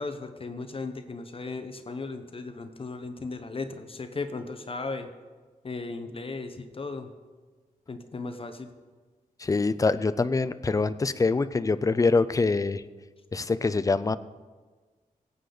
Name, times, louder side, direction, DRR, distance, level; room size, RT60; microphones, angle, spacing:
voice 1, 0.0-5.1 5.6-7.1 7.9-8.7, left 3 dB, 40° left, 8 dB, 0.9 m, -36 dB
voice 2, 9.4-12.8 13.3-14.2, left 3 dB, 25° left, 13 dB, 0.4 m, -24 dB
19.5 x 8.4 x 3.9 m, 1.4 s
wide cardioid pair, 130°, 15 cm